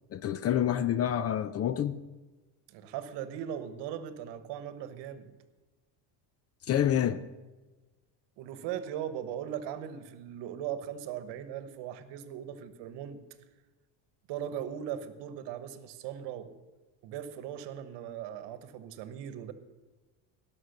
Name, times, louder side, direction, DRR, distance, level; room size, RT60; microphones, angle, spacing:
voice 1, 0.1-2.0 6.7-7.2, left 10 dB, 35° left, 0.5 m, -27 dB
voice 2, 2.7-5.3 8.4-13.2 14.3-16.5 17.0-19.5, right 10 dB, 65° right, 1.2 m, -39 dB
17.5 x 6.2 x 6.6 m
cardioid pair, 115°, 45 cm